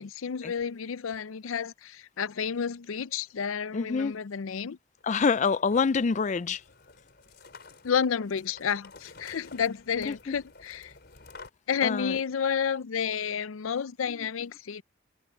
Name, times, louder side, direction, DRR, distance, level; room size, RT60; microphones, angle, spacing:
voice 1, 0.0-4.8 7.8-10.9 11.7-14.8, left 7 dB, 90° left, 0.5 m, -31 dB
voice 2, 3.7-4.1 5.0-6.6 10.1-10.2 11.8-12.2, left 5 dB, 35° left, 0.4 m, -26 dB
sound 1, 5.0-11.5, left 3 dB, 55° left, 4.5 m, -51 dB
head